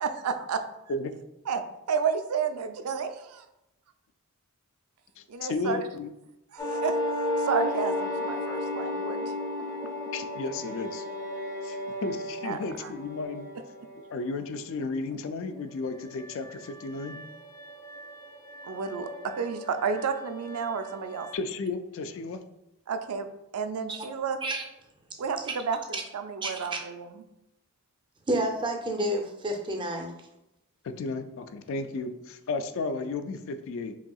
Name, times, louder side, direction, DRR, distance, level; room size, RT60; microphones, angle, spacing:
voice 1, 0.0-0.6 1.5-1.6 1.9-3.5 5.3-5.8 6.5-7.0 7.4-9.3 12.4-12.9 18.6-21.3 22.9-23.3 23.5-24.4 25.2-27.1, right 5 dB, 80° right, 8 dB, 0.4 m, -31 dB
voice 2, 5.5-6.1 10.1-11.0 11.6-13.5 14.1-17.2 21.3-22.4 30.8-33.9, left 3 dB, 60° left, 9 dB, 0.3 m, -33 dB
sound 1, 6.6-14.1 16.1-21.4, left 1 dB, 20° left, 0.6 m, -34 dB
voice 3, 26.4-26.8 28.3-30.1, right 1 dB, 20° right, 3 dB, 0.5 m, -29 dB
5.4 x 2.7 x 2.3 m, 0.89 s
head